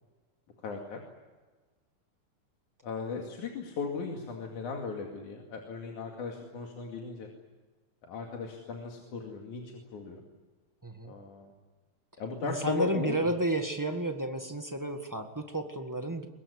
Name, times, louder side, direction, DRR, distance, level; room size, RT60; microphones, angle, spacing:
voice 1, 0.6-1.0 2.8-7.3 8.0-9.6 9.9-10.2 11.0-11.5 12.2-13.3, left 5 dB, 70° left, 1 dB, 3.8 m, -37 dB
voice 2, 10.8-11.1 12.4-16.3, right 1 dB, 25° right, 5 dB, 0.4 m, -32 dB
23.5 x 21.5 x 9.8 m, 1.3 s
omnidirectional pair, 3.6 m